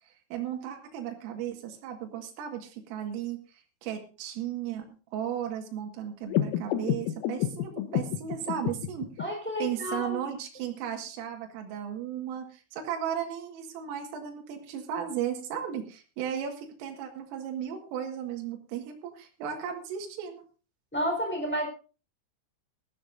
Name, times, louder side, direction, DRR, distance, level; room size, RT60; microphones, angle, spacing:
voice 1, 0.3-9.1 9.6-20.4, right 9 dB, 75° right, 2 dB, 4.4 m, -35 dB
sound 1, 6.3-9.2, left 11 dB, 85° left, 3.8 m, -30 dB
voice 2, 9.2-10.3 20.9-21.7, equal, ahead, 1 dB, 3.4 m, -31 dB
19.5 x 14.0 x 2.6 m, 0.35 s
omnidirectional pair, 6.0 m